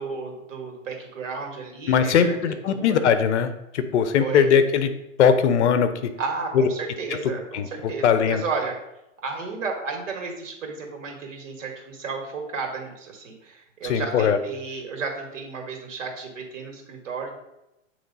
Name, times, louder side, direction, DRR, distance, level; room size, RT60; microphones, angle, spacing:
voice 1, 0.0-3.1 4.2-4.5 6.2-8.8 9.2-17.3, right 4 dB, 70° right, 2 dB, 1.8 m, -33 dB
voice 2, 1.9-4.9 5.2-6.1 6.5-6.7 7.1-8.4 13.8-14.4, left 7 dB, 60° left, 10 dB, 0.7 m, -20 dB
8.4 x 3.1 x 4.0 m, 0.89 s
hypercardioid pair, 140°, 39 cm